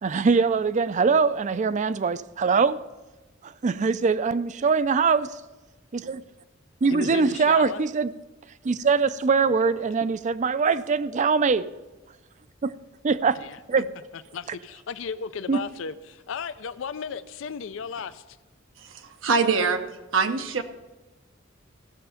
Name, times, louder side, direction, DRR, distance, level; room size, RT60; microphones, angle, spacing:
voice 1, 0.0-2.8 3.4-5.3 5.9-6.2 6.8-8.1 8.6-11.7 12.6-12.7 13.0-13.4 13.7-13.9 15.5-15.6, right 5 dB, 40° right, 0.4 m, -22 dB
voice 2, 6.9-7.8 9.4-9.8 13.4-13.6 14.3-18.4, left 6 dB, 70° left, 0.4 m, -35 dB
voice 3, 18.8-19.8 20.1-20.6, right 4 dB, 75° right, 0.8 m, -24 dB
15.0 x 6.6 x 5.6 m
head